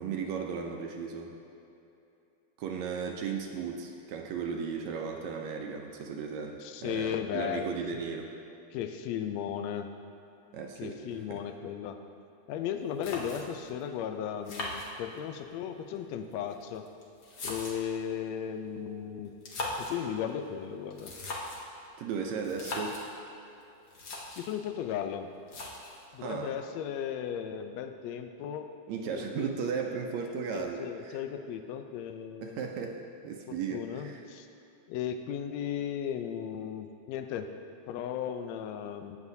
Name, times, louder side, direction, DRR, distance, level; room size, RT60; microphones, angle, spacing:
voice 1, 0.0-1.3 2.6-8.3 10.5-11.4 22.0-23.0 26.2-26.6 28.9-31.2 32.4-33.0 33.2-34.2, right 6 dB, 75° right, 2 dB, 1.8 m, -36 dB
voice 2, 6.6-7.7 8.7-9.9 10.8-12.0 12.5-16.9 17.4-19.3 19.8-21.2 24.4-25.3 26.1-28.7 29.1-29.5 30.3-32.7 33.5-34.5 34.9-37.5 37.9-39.2, left 9 dB, 75° left, 7 dB, 1.6 m, -36 dB
sound 1, 12.6-12.7 13.0-13.7 14.4-15.4 16.3-18.0 19.3-20.0 20.9-21.7 22.4-23.1 23.6-23.7 23.9-24.5 25.5-26.1, left 2 dB, 60° left, 1.0 m, -39 dB
17.0 x 7.2 x 2.7 m, 2.8 s
omnidirectional pair, 3.5 m